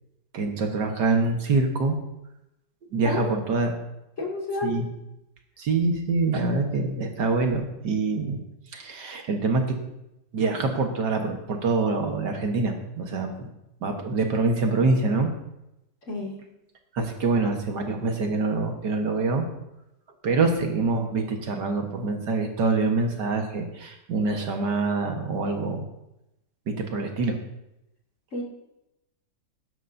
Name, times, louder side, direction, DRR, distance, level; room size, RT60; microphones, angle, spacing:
voice 1, 0.3-2.0 2.9-3.7 4.6-4.8 5.6-8.4 8.7-9.8 10.3-13.5 13.8-15.3 16.9-19.5 20.2-25.8 26.7-27.4, right 3 dB, 60° right, 3 dB, 1.9 m, -25 dB
voice 2, 3.0-3.4 4.2-4.8 16.1-16.4 28.3-28.4, left 2 dB, 40° left, -3 dB, 2.7 m, -30 dB
16.5 x 11.5 x 2.7 m, 0.88 s
omnidirectional pair, 2.1 m